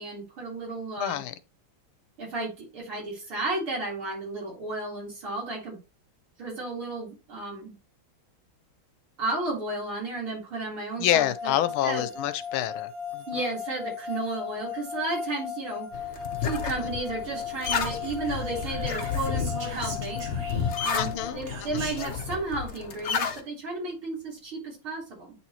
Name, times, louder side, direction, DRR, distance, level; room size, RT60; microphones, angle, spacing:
voice 1, 0.0-1.2 2.2-5.8 6.4-7.7 9.2-11.5 11.8-12.0 13.3-15.9 16.4-20.2 20.8-25.3, right 2 dB, 80° right, 4.5 m, -33 dB
voice 2, 1.0-1.3 11.0-13.2 20.9-21.8, left 12 dB, 80° left, 1.4 m, -28 dB
sound 1, 11.1-21.3, left 7 dB, 55° right, 0.6 m, -37 dB
sound 2, 15.9-23.4, left 6 dB, 55° left, 0.7 m, -32 dB
Whispering, 17.9-20.9 21.5-22.2, right 3 dB, 40° right, 1.2 m, -42 dB
9.8 x 4.2 x 2.9 m
omnidirectional pair, 2.3 m